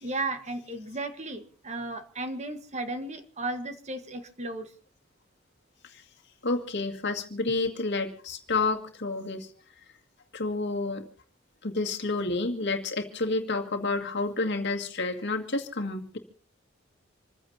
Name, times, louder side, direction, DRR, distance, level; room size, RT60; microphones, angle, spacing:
voice 1, 0.0-4.7, right 2 dB, 35° right, 8 dB, 1.5 m, -34 dB
voice 2, 6.4-9.5 10.3-11.1 11.6-16.2, left 3 dB, 60° left, 4 dB, 2.2 m, -29 dB
27.5 x 15.0 x 2.8 m, 0.41 s
head